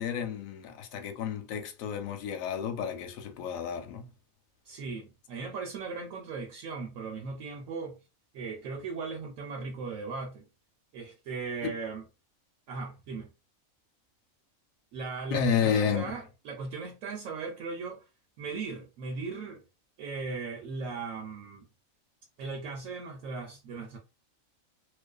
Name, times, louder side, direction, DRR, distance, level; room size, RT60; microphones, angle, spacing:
voice 1, 0.0-4.1 11.6-11.7 15.3-16.1, left 7 dB, 80° left, 1.0 m, -31 dB
voice 2, 4.7-8.0 8.3-10.4 10.9-12.0 12.7-13.3 14.9-18.0 18.4-19.6 20.0-21.7 22.4-24.0, right 4 dB, 80° right, 1.0 m, -38 dB
2.4 x 2.4 x 2.2 m
omnidirectional pair, 1.4 m